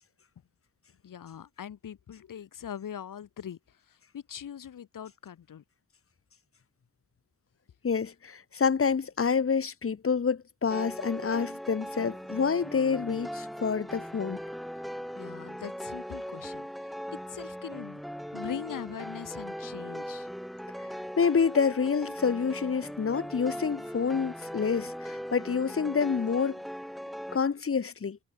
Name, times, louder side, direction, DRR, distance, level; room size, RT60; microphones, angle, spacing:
voice 1, 1.0-3.6 4.1-5.6 15.1-16.7 17.3-18.0 18.3-20.3, left 9 dB, 60° left, 2.1 m, -41 dB
voice 2, 7.8-14.4 21.2-26.6 27.3-28.2, left 6 dB, 40° left, 1.8 m, -28 dB
sound 1, 10.7-27.4, equal, ahead, 0.6 m, -39 dB
cardioid pair, 85°, 36 cm